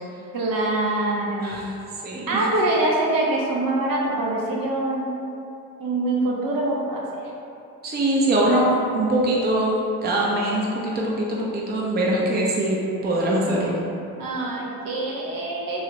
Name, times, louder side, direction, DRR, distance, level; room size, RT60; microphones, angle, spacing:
voice 1, 0.3-1.7 2.3-5.0 5.8-7.2 14.2-15.8, right 2 dB, 65° right, -3 dB, 0.7 m, -24 dB
voice 2, 7.8-8.6 8.9-13.8, right 1 dB, 25° right, -4 dB, 0.5 m, -22 dB
3.0 x 2.4 x 2.8 m, 2.7 s
cardioid pair, 75°, 36 cm